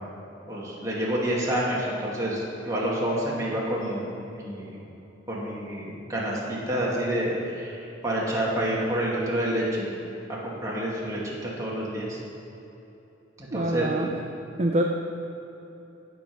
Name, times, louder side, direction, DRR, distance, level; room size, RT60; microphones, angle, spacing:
voice 1, 0.5-4.8 5.3-9.9 10.3-12.2 13.4-13.9, right 1 dB, 15° right, -6 dB, 2.3 m, -28 dB
voice 2, 13.5-14.1 14.6-14.8, right 1 dB, 35° right, 1 dB, 0.6 m, -25 dB
15.5 x 5.3 x 6.2 m, 3.0 s
head